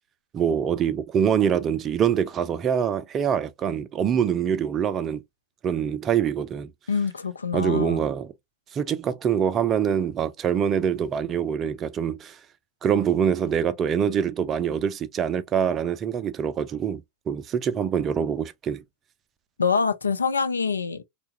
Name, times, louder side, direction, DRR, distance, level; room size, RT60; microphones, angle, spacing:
voice 1, 0.3-5.2 5.6-6.7 7.5-8.3 8.7-12.4 12.8-18.8, right 8 dB, 25° right, 0.4 m, -25 dB
voice 2, 6.9-8.0 19.6-21.0, left 5 dB, 75° left, 0.4 m, -25 dB
3.1 x 2.3 x 2.6 m
figure-of-eight pair, 90°, 0 cm